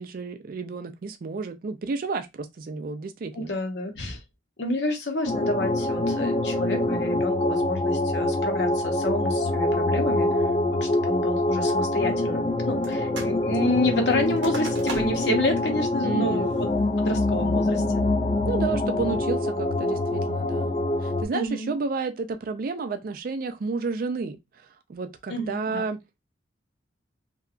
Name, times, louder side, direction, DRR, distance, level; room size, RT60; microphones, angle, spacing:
voice 1, 0.0-3.5 16.0-16.5 18.5-20.7 21.0-24.4 24.9-26.0, right 4 dB, 50° right, 0.4 m, -31 dB
voice 2, 3.3-4.2 4.6-10.5 10.8-16.7 17.0-18.1 21.3-21.7 25.3-25.8, left 1 dB, 70° left, 0.7 m, -29 dB
sound 1, 5.3-21.2, left 2 dB, 35° left, 0.3 m, -25 dB
sound 2, 12.8-13.4 13.7-15.4 15.8-15.9 16.4-16.8 17.3-17.7, right 3 dB, 90° right, 0.8 m, -39 dB
2.7 x 2.2 x 2.4 m
head